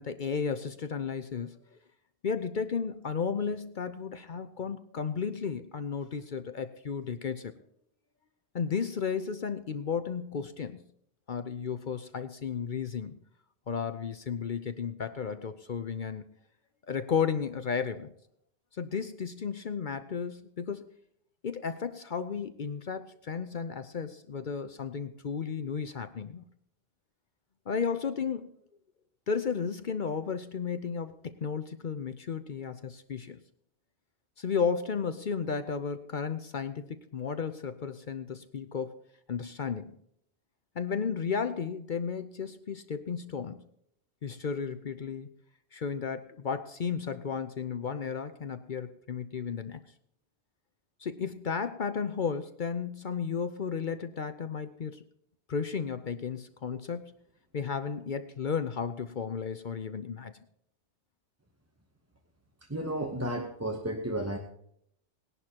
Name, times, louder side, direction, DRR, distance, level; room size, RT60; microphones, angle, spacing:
voice 1, 0.0-1.8 2.2-7.5 8.5-10.8 11.3-13.2 13.7-16.2 16.9-18.1 18.8-20.9 21.4-26.4 27.7-28.5 29.3-33.4 34.4-39.0 39.3-40.0 40.8-43.6 44.2-45.3 45.7-49.8 51.0-55.0 55.5-57.1 57.5-60.3, left 6 dB, 50° left, 10 dB, 0.7 m, -33 dB
voice 2, 62.7-64.4, right 1 dB, 15° right, 3 dB, 0.9 m, -32 dB
19.5 x 11.0 x 2.9 m, 0.70 s
omnidirectional pair, 1.2 m